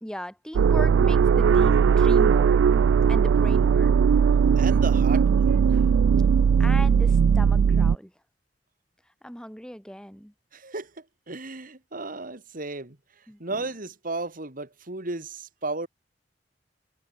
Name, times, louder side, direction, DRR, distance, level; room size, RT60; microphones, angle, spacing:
voice 1, 0.0-2.6 3.1-3.9 6.6-8.1 9.2-10.3 13.3-13.6, equal, 5° left, 3.1 m, -37 dB
sound 1, 0.5-8.0, right 6 dB, 85° right, 0.3 m, -19 dB
voice 2, 4.6-5.8 10.5-15.9, right 3 dB, 50° right, 2.5 m, -35 dB
head